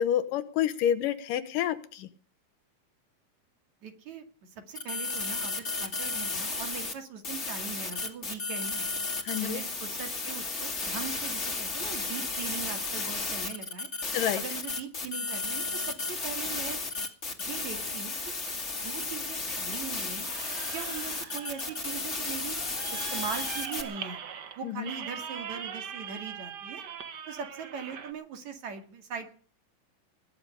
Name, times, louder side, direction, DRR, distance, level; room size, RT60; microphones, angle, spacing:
voice 1, 0.0-2.1 9.2-9.6 14.1-14.4 24.6-24.9, left 10 dB, 80° left, 12 dB, 2.7 m, -28 dB
voice 2, 3.8-4.2 4.7-8.9 9.4-13.9 14.4-16.8 17.4-18.4 18.8-20.3 20.7-22.6 22.9-24.2 24.6-26.8 27.3-29.3, right 6 dB, 60° right, 6 dB, 3.5 m, -40 dB
sound 1, 4.8-6.9 7.2-23.8, left 3 dB, 25° left, 2.1 m, -33 dB
sound 2, 20.2-28.1, right 7 dB, 85° right, 0.9 m, -41 dB
20.5 x 7.1 x 9.9 m, 0.43 s
omnidirectional pair, 3.8 m